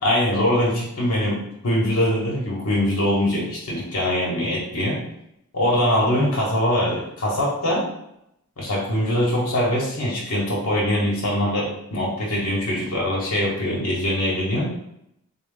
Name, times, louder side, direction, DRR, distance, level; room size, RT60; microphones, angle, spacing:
voice 1, 0.0-5.0 5.5-7.8 8.6-14.7, left 1 dB, 75° left, -5 dB, 1.1 m, -22 dB
3.6 x 2.2 x 3.7 m, 0.78 s
head